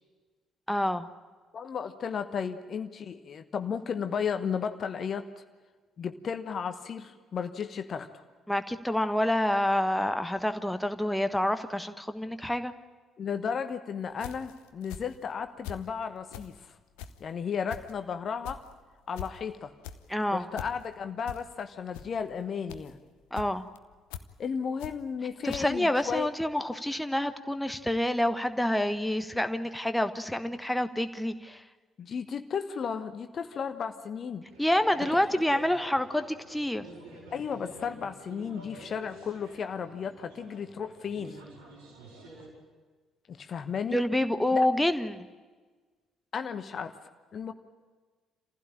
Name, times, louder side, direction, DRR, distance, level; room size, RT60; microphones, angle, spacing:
voice 1, 0.7-1.1 8.5-12.7 20.1-20.4 23.3-23.7 25.4-31.6 34.6-36.9 43.9-45.3, left 1 dB, 5° left, 8 dB, 1.2 m, -28 dB
voice 2, 1.5-5.4 6.0-8.2 13.2-16.8 17.2-18.6 19.1-19.7 20.3-23.0 24.4-26.3 32.0-34.4 35.5-35.6 37.3-41.4 43.3-44.0 44.5-44.6 46.3-46.9 47.3-47.5, left 6 dB, 45° left, 8 dB, 1.1 m, -34 dB
sound 1, 14.1-15.9 16.3-25.2 25.5-25.6, left 9 dB, 70° left, 0.8 m, -43 dB
sound 2, 34.4-42.5, right 1 dB, 75° right, 5.0 m, -49 dB
27.5 x 15.5 x 8.9 m, 1.4 s
figure-of-eight pair, 45°, 0 cm